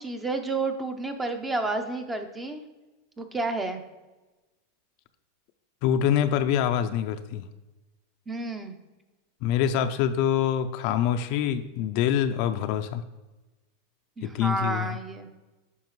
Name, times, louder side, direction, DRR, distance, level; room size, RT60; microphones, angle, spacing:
voice 1, 0.0-2.6 3.2-3.8 8.3-8.8 14.2-15.3, right 3 dB, 10° right, 7 dB, 0.6 m, -30 dB
voice 2, 5.8-7.4 9.4-13.0 14.2-14.9, left 9 dB, 50° left, 9 dB, 0.4 m, -25 dB
9.0 x 5.7 x 3.1 m, 1.1 s
supercardioid pair, 150°, 0 cm